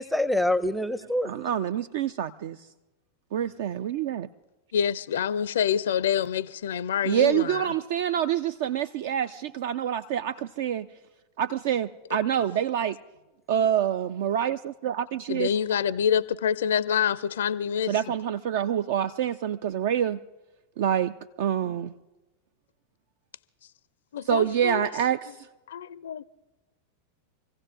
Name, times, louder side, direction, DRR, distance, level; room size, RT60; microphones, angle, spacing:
voice 1, 0.0-1.3, left 1 dB, ahead, 0.6 m, -25 dB
voice 2, 1.2-2.7 3.3-4.3 7.0-10.9 11.4-13.0 13.5-15.5 17.9-20.2 20.8-21.9 24.2-25.5, right 9 dB, 55° right, 0.4 m, -26 dB
voice 3, 4.7-7.7 15.3-17.9 24.1-24.9 25.7-26.2, left 8 dB, 60° left, 0.4 m, -26 dB
27.0 x 16.0 x 2.4 m
figure-of-eight pair, 90°, 0 cm